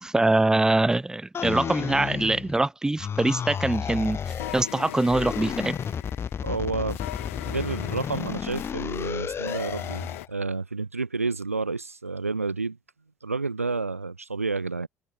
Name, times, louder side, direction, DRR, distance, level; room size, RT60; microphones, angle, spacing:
voice 1, 0.0-4.2 4.5-5.8, right 2 dB, 10° right, 0.7 m, -23 dB
sound 1, 1.3-2.7 3.0-4.6 5.1-10.3, left 7 dB, 35° left, 3.8 m, -32 dB
sound 2, 3.6-10.3, left 17 dB, 70° left, 2.8 m, -40 dB
voice 2, 6.4-7.0 7.4-12.8 13.2-14.9, right 3 dB, 85° right, 0.6 m, -30 dB
figure-of-eight pair, 60°, 7 cm